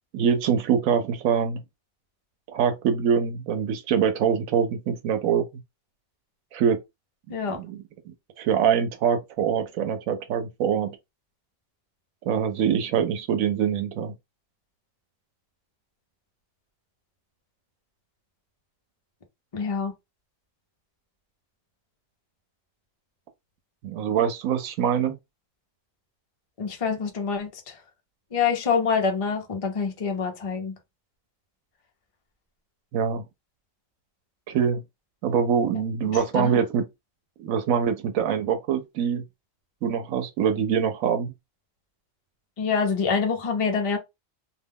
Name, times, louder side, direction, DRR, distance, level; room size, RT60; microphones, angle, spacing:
voice 1, 0.1-1.6 2.5-5.5 6.5-6.8 7.5-7.8 8.4-11.0 12.3-14.1 23.8-25.1 32.9-33.2 34.5-34.8 35.2-36.8 37.4-39.2 39.8-41.3, right 7 dB, 85° right, 1.0 m, -24 dB
voice 2, 19.5-19.9 26.6-27.8 28.3-30.7 36.1-36.5 42.6-44.0, left 5 dB, 40° left, 0.5 m, -26 dB
2.5 x 2.2 x 3.3 m
omnidirectional pair, 1.4 m